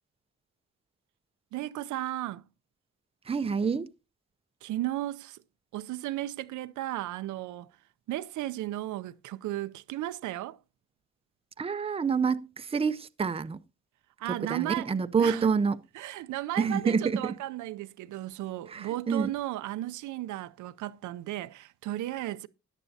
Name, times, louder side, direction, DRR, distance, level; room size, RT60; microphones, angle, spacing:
voice 1, 1.5-2.4 4.6-5.4 5.7-7.7 8.1-10.6 14.2-14.9 15.1-15.5 16.0-22.5, right 15 dB, 85° right, 0.6 m, -35 dB
voice 2, 3.2-3.9 11.6-13.6 14.3-15.8 16.6-17.4 18.7-19.3, right 5 dB, 20° right, 0.5 m, -28 dB
14.0 x 9.8 x 2.7 m
cardioid pair, 85°, 29 cm